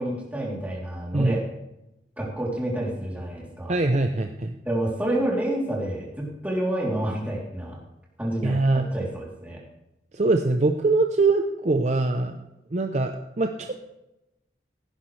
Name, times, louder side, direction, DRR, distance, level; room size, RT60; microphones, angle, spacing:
voice 1, 0.0-1.4 2.2-3.8 4.6-7.8 8.2-9.6, right 1 dB, 10° right, -4 dB, 3.1 m, -29 dB
voice 2, 3.7-4.5 8.4-8.9 10.1-12.4 12.7-13.8, right 3 dB, 40° right, 5 dB, 0.6 m, -23 dB
16.5 x 10.5 x 3.3 m, 0.92 s
head